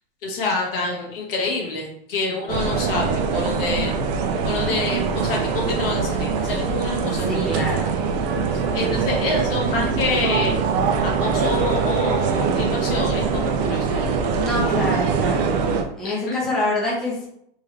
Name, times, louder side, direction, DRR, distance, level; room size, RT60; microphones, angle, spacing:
voice 1, 0.2-4.0 4.4-7.6 8.7-10.5 11.0-14.0 16.0-16.4, left 3 dB, 65° left, -1 dB, 1.5 m, -27 dB
sound 1, 2.5-15.8, right 5 dB, 45° right, 0.6 m, -23 dB
voice 2, 7.2-7.9 14.4-15.5 16.0-17.3, left 2 dB, ahead, -7 dB, 0.9 m, -26 dB
3.6 x 3.1 x 3.2 m, 0.71 s
supercardioid pair, 150°, 30 cm